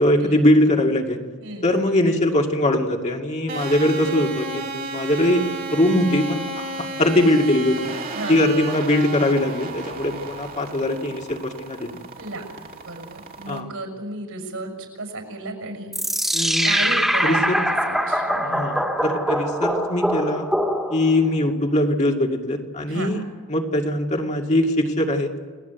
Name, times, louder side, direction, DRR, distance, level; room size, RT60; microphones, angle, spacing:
voice 1, 0.0-1.2 1.6-7.8 8.3-11.9 13.5-13.6 16.3-16.8 17.2-17.6 18.5-20.5 20.9-23.2 23.5-25.3, left 1 dB, 35° left, 2 dB, 2.3 m, -21 dB
sound 1, 3.5-13.6, right 3 dB, 45° right, 2.9 m, -33 dB
voice 2, 8.1-8.6 12.2-15.9 16.6-18.7 22.9-23.1, right 2 dB, 70° right, 4 dB, 6.2 m, -34 dB
sound 2, 15.9-21.2, equal, ahead, 2.4 m, -23 dB
30.0 x 19.0 x 8.2 m, 1.5 s
head